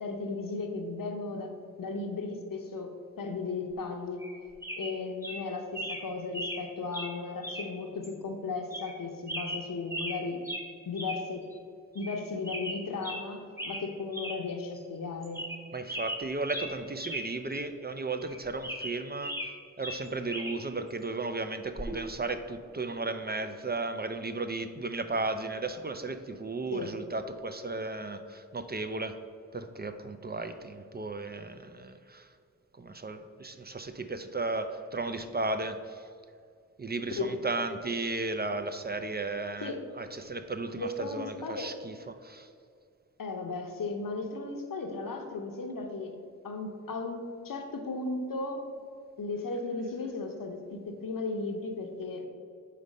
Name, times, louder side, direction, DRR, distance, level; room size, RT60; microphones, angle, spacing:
voice 1, 0.0-1.5 1.8-4.2 4.8-10.4 10.8-11.4 11.9-15.4 26.7-26.9 37.2-37.4 39.6-39.8 40.8-41.7 43.2-46.2 46.4-47.2 47.4-48.6 49.2-52.3, left 3 dB, 75° left, 4 dB, 0.8 m, -35 dB
sound 1, 4.2-4.4 4.6-4.9 5.2-5.4 5.7-6.0 6.3-6.6 6.9-7.1 7.4-7.7 8.0-8.1 8.7-9.0 9.3-10.2 10.4-10.7 11.0-11.2 11.5-11.6 12.0-12.2 12.4-13.2 13.6-13.8 14.1-14.4 14.8-14.9 15.2-15.6 15.9-17.2 17.5-17.6 18.2-19.5 19.8-20.6 21.8-22.0, equal, 10° right, 1.0 m, -37 dB
voice 2, 15.7-19.4 19.8-29.2 29.5-32.3 32.8-36.1 36.8-42.5, right 3 dB, 30° right, 8 dB, 0.4 m, -35 dB
5.0 x 4.0 x 5.3 m, 2.2 s
cardioid pair, 45°, 34 cm